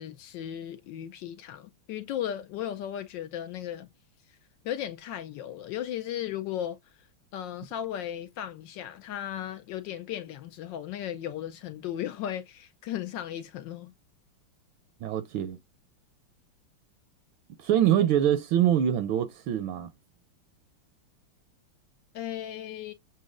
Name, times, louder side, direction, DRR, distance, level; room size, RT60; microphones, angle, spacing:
voice 1, 0.0-3.9 4.6-7.1 7.3-13.9 22.1-22.9, left 11 dB, 75° left, 1.1 m, -36 dB
voice 2, 15.0-15.6 17.6-19.9, right 10 dB, 75° right, 1.3 m, -24 dB
7.3 x 2.7 x 2.4 m
omnidirectional pair, 2.4 m